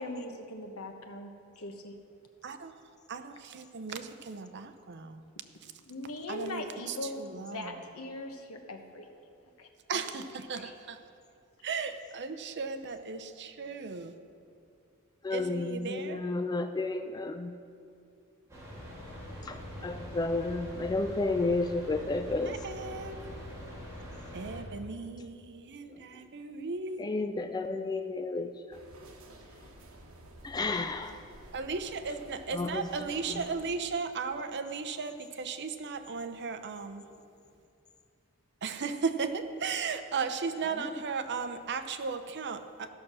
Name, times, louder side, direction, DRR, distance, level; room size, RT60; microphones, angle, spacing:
voice 1, 0.0-1.9 5.8-9.1 9.6-9.7 10.5-10.8, left 2 dB, 85° left, 5 dB, 1.1 m, -40 dB
voice 2, 3.1-5.2 6.3-7.8 9.9-11.0 11.6-14.1 15.3-16.2 22.5-23.2 24.3-27.1 31.5-37.1 38.6-42.9, right 5 dB, 55° right, 9 dB, 0.7 m, -36 dB
voice 3, 15.2-17.5 19.4-22.7 27.0-28.8 30.4-31.2 32.5-33.5 40.8-41.0, left 3 dB, 20° left, 8 dB, 0.3 m, -32 dB
sound 1, 18.5-24.6, equal, 15° right, 2.5 m, -43 dB
sound 2, 28.7-33.7, right 1 dB, 70° right, 1.4 m, -52 dB
14.5 x 6.2 x 6.1 m, 2.5 s
head